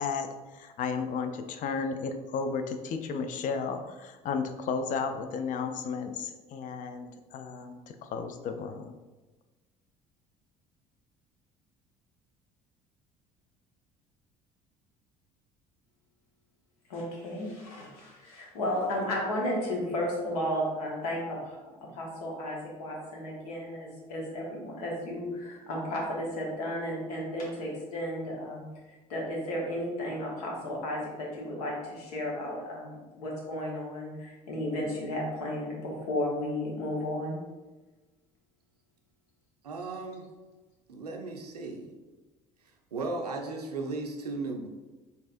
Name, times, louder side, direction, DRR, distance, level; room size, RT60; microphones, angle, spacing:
voice 1, 0.0-8.9, left 5 dB, 40° left, 7 dB, 0.4 m, -33 dB
voice 2, 16.9-28.6 29.1-37.4, left 1 dB, 70° left, -2 dB, 1.1 m, -33 dB
voice 3, 39.6-40.3 40.9-41.9 42.9-44.7, right 3 dB, 85° right, 4 dB, 0.5 m, -36 dB
4.0 x 3.5 x 2.5 m, 1.2 s
figure-of-eight pair, 60°, 20 cm